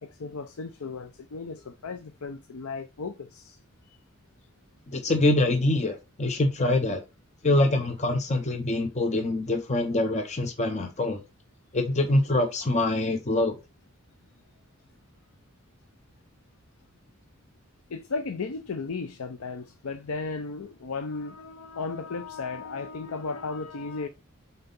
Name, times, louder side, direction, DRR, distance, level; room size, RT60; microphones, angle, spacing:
voice 1, 0.0-3.6 17.9-24.1, left 4 dB, 85° left, 0.6 m, -35 dB
voice 2, 4.9-7.0 7.4-11.2 11.7-13.6, left 2 dB, 30° left, 0.7 m, -25 dB
5.8 x 4.0 x 5.4 m
head